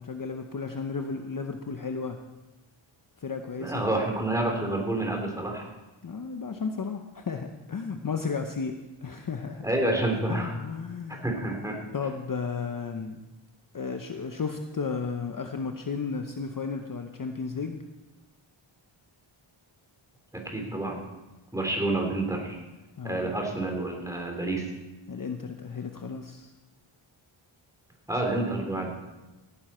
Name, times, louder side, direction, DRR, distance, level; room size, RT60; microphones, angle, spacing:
voice 1, 0.0-2.2 3.2-3.9 6.0-9.6 10.3-11.2 11.9-13.2 13.7-17.8 23.0-23.4 25.1-26.5, left 5 dB, 40° left, 5 dB, 0.8 m, -33 dB
voice 2, 3.6-5.6 9.6-10.5 11.1-11.8 20.4-21.0 21.5-22.6 23.0-24.6 28.1-28.9, right 2 dB, 5° right, 0 dB, 3.4 m, -28 dB
17.0 x 10.0 x 4.4 m, 1.1 s
wide cardioid pair, 100°, 49 cm